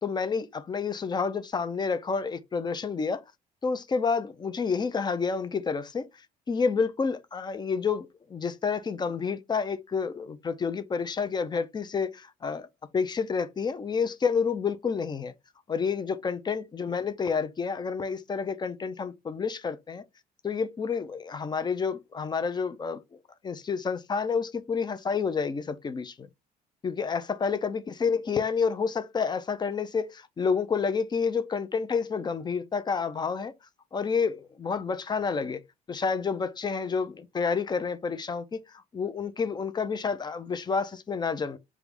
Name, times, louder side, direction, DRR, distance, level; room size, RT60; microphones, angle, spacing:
voice 1, 0.0-3.2 3.6-6.1 6.5-12.7 12.9-15.3 15.7-20.0 20.4-23.0 23.4-26.3 26.8-33.5 33.9-35.6 35.9-41.6, left 5 dB, 25° left, 0.5 m, -29 dB
3.4 x 2.5 x 3.4 m
cardioid pair, 110°, 17 cm